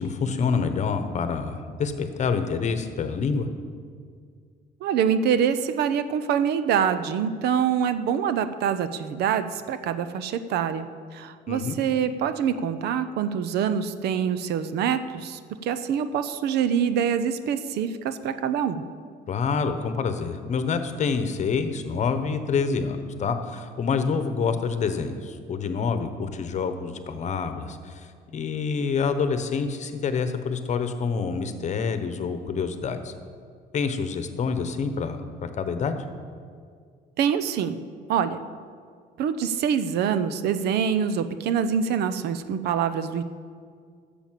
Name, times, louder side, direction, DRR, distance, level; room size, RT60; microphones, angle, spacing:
voice 1, 0.0-3.5 11.5-11.8 19.3-33.1 33.7-36.0, left 5 dB, 45° left, 9 dB, 1.1 m, -27 dB
voice 2, 4.8-10.9 11.1-18.8 37.2-37.8 38.1-38.4 39.2-43.2, right 8 dB, 75° right, 11 dB, 0.7 m, -25 dB
12.0 x 7.1 x 7.6 m, 2.1 s
cardioid pair, 110°, 17 cm